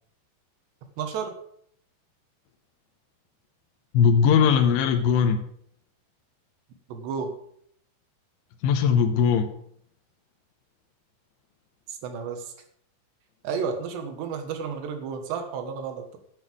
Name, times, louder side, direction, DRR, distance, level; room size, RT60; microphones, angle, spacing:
voice 1, 1.0-1.4 6.9-7.3 11.9-12.5 13.4-16.2, right 6 dB, 75° right, 6 dB, 3.5 m, -32 dB
voice 2, 3.9-5.4 8.6-9.6, left 7 dB, 85° left, 6 dB, 3.1 m, -20 dB
9.9 x 7.7 x 7.6 m, 0.66 s
omnidirectional pair, 5.2 m